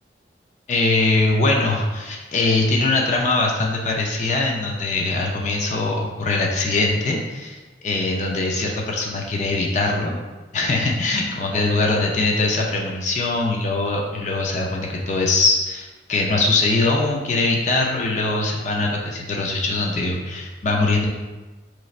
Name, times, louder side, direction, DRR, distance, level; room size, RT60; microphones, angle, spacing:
voice 1, 0.7-10.2 10.5-21.1, left 2 dB, 45° left, -1 dB, 0.5 m, -22 dB
5.2 x 3.1 x 2.4 m, 1.2 s
head